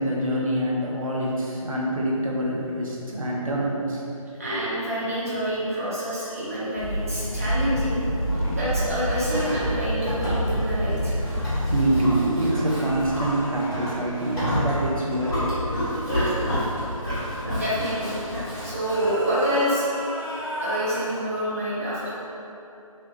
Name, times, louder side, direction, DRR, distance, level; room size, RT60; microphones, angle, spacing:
voice 1, 0.0-4.0 11.5-15.5, right 1 dB, 70° right, -4 dB, 0.8 m, -25 dB
voice 2, 4.4-8.0 8.5-11.1 17.6-18.2 18.6-19.9 20.2-22.1, equal, 25° right, -10 dB, 0.7 m, -27 dB
sound 1, 6.8-12.3, equal, 85° left, 0.5 m, -27 dB
Livestock farm animals working animals, 7.3-19.0, equal, ahead, 1.0 m, -30 dB
sound 2, 12.7-15.9 18.7-21.2, equal, 40° left, 0.6 m, -36 dB
3.3 x 2.9 x 2.7 m, 2.9 s
figure-of-eight pair, 165°, 18 cm